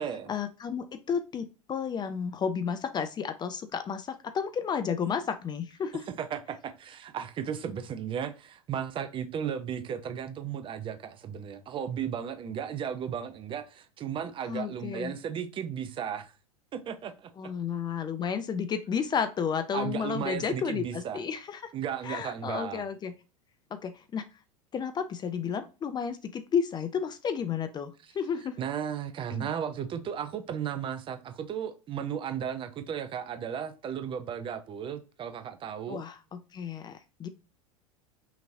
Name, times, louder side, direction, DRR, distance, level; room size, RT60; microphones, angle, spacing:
voice 1, 0.3-6.1 14.5-15.1 17.4-21.6 22.0-23.1 23.7-24.2 24.7-28.6 29.3-29.5 35.9-37.3, left 7 dB, 25° left, 0.5 m, -32 dB
voice 2, 6.2-16.3 16.7-17.3 19.7-21.2 21.7-22.8 28.6-36.0, right 8 dB, 25° right, 0.6 m, -35 dB
5.7 x 2.9 x 2.7 m
figure-of-eight pair, 85°, 19 cm